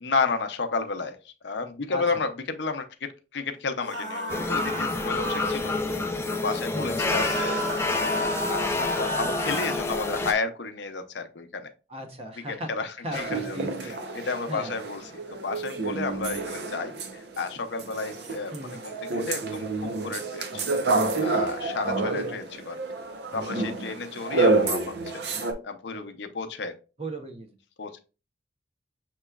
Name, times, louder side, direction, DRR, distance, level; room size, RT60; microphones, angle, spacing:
voice 1, 0.0-11.7 12.3-15.1 15.4-20.7 21.2-22.8 23.3-25.0 25.3-26.8 27.8-27.9, left 4 dB, 70° left, 8 dB, 0.6 m, -32 dB
voice 2, 1.9-2.2 6.7-7.0 11.9-12.7 13.0-13.9 14.5-14.7 18.5-18.8 22.0-22.4 27.0-27.5, equal, 30° right, 4 dB, 0.8 m, -36 dB
sound 1, 3.8-5.6 7.0-9.8, equal, 85° right, 1.2 m, -32 dB
sound 2, 4.3-10.3, left 3 dB, 15° left, 0.4 m, -28 dB
sound 3, 13.1-17.5 17.8-25.5, right 3 dB, 60° right, 0.7 m, -29 dB
6.6 x 3.0 x 2.3 m, 0.32 s
head